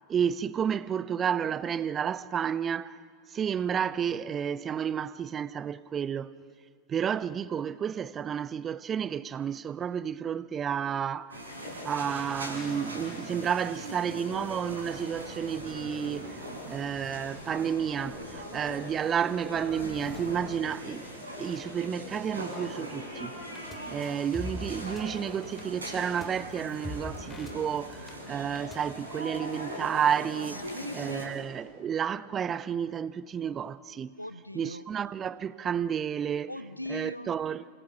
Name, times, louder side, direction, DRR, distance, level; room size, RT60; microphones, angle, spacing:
voice 1, 0.1-3.0 3.3-6.3 6.9-11.4 11.8-23.3 23.9-30.6 30.9-34.2 34.5-36.5 36.9-37.7, right 8 dB, 25° right, 0.6 m, -31 dB
sound 1, 11.3-31.2, equal, 75° right, 5.9 m, -41 dB
Zipper (clothing), 17.2-21.5 22.0-22.1 22.3-22.4 22.6-22.9, left 2 dB, 55° left, 5.4 m, -48 dB
sound 2, 23.5-23.8 24.0-25.0 25.3-25.6 26.2-26.3 26.5-28.1 28.4-28.8, left 2 dB, 10° left, 3.9 m, -40 dB
voice 2, 30.6-31.4 34.2-34.8 36.5-37.4, left 1 dB, 85° left, 0.9 m, -40 dB
28.0 x 27.0 x 6.8 m
figure-of-eight pair, 90°, 0 cm